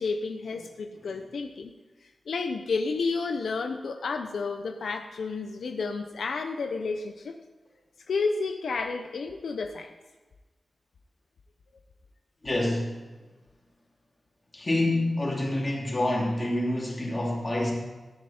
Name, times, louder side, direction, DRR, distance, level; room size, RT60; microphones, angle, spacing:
voice 1, 0.0-1.7 2.3-7.4 8.1-9.9, left 4 dB, 85° left, 5 dB, 0.8 m, -31 dB
voice 2, 12.4-13.0 14.5-17.7, left 1 dB, 25° left, -3 dB, 2.9 m, -27 dB
14.0 x 9.9 x 4.4 m, 1.2 s
wide cardioid pair, 170°, 0 cm